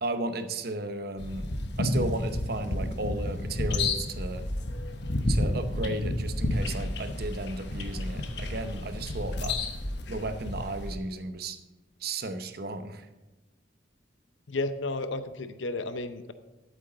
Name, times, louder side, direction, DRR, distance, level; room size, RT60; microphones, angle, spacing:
voice 1, 0.0-1.5 1.8-4.5 5.3-9.6 10.1-11.6 12.0-13.1, right 2 dB, 55° right, 9 dB, 0.8 m, -34 dB
sound 1, 1.2-10.9, left 1 dB, 60° left, 1.1 m, -31 dB
voice 2, 14.5-16.3, left 2 dB, 80° left, 10 dB, 0.7 m, -32 dB
12.5 x 8.1 x 3.9 m, 1.1 s
head